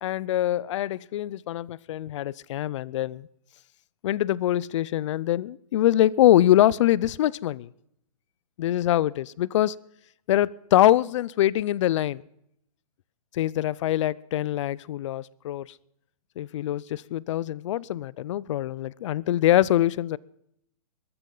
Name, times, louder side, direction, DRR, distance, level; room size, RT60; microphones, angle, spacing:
voice 1, 0.0-3.3 4.0-7.7 8.6-9.7 10.3-12.2 13.3-15.7 16.4-20.2, left 13 dB, 55° left, 24 dB, 0.4 m, -24 dB
21.5 x 12.5 x 3.9 m, 0.74 s
hypercardioid pair, 145°, 19 cm